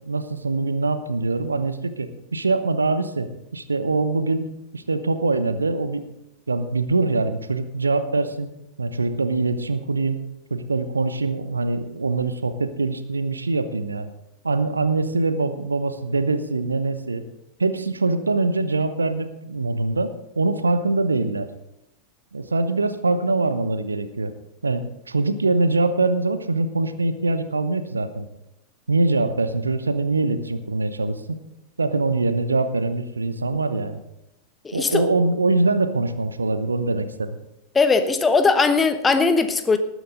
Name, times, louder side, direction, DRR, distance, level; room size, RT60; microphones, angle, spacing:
voice 1, 0.0-4.4 4.7-6.0 6.5-8.5 8.8-10.2 10.5-14.1 14.4-17.2 17.6-21.5 22.3-24.3 24.6-28.3 28.9-31.2 31.8-34.0 34.7-37.4, right 3 dB, 80° right, 12 dB, 0.9 m, -23 dB
voice 2, 34.6-35.1 37.7-39.8, left 4 dB, 15° left, 9 dB, 1.1 m, -19 dB
19.0 x 9.4 x 3.9 m, 0.88 s
figure-of-eight pair, 90°, 0 cm